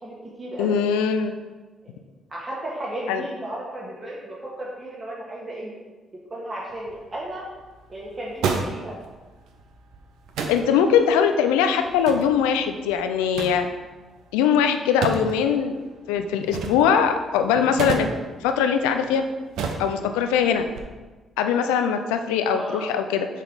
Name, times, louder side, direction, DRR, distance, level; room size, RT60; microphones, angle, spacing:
voice 1, 0.0-0.8 1.8-1.9 2.3-5.8 6.3-7.5 7.9-8.9 22.6-22.9, right 1 dB, 35° right, -5 dB, 1.7 m, -34 dB
voice 2, 0.6-1.3 3.1-3.2 10.5-13.7 14.3-15.7 16.1-18.1 18.4-19.2 19.8-20.6 21.4-23.3, left 7 dB, 85° left, 7 dB, 0.4 m, -21 dB
sound 1, 6.7-20.8, right 5 dB, 75° right, 0.7 m, -34 dB
6.4 x 3.8 x 5.1 m, 1.3 s
hypercardioid pair, 50°, 0 cm